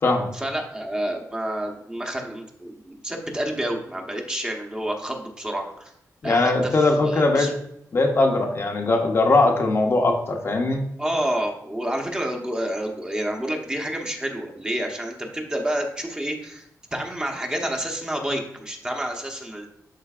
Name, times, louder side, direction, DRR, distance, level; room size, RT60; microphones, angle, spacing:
voice 1, 0.3-5.9 6.2-7.5 11.0-19.7, right 1 dB, 15° right, 1 dB, 1.0 m, -29 dB
voice 2, 6.2-7.5 7.9-10.8, left 2 dB, 40° left, 2 dB, 0.9 m, -20 dB
11.5 x 3.9 x 2.5 m, 0.76 s
wide cardioid pair, 125°, 6 cm